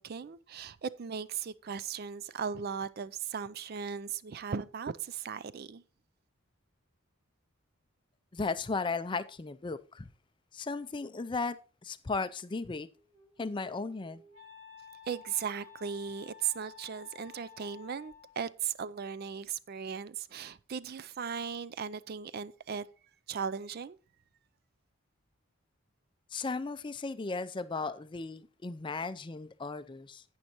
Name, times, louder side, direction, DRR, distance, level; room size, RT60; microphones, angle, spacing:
voice 1, 0.0-5.8 15.1-22.9 23.3-24.0, right 7 dB, 45° right, 0.4 m, -37 dB
voice 2, 8.3-10.1 10.5-12.9 13.4-14.2 26.3-30.2, left 4 dB, 20° left, 0.4 m, -36 dB
Wind instrument woodwind instrument, 12.9-18.4, left 7 dB, 60° right, 2.8 m, -53 dB
11.5 x 8.6 x 2.9 m
head